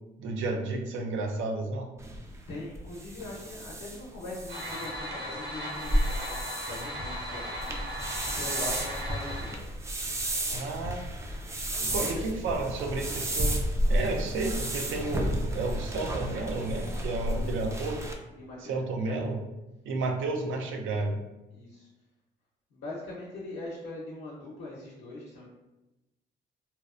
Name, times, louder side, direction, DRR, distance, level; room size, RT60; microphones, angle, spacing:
voice 1, 0.2-1.9 10.5-11.0 11.8-13.6 13.9-18.0 18.6-19.4 19.9-21.2, right 3 dB, 80° right, 2 dB, 0.5 m, -32 dB
sound 1, 2.0-18.1, right 1 dB, 15° right, 0.3 m, -32 dB
voice 2, 2.5-9.6 12.0-12.2 17.3-17.5 18.3-19.3 21.5-21.9 22.7-25.5, left 2 dB, 75° left, -6 dB, 0.7 m, -41 dB
sound 2, 4.5-9.5, equal, 55° right, 0.9 m, -37 dB
2.7 x 2.0 x 2.4 m, 1.0 s
cardioid pair, 90°, 20 cm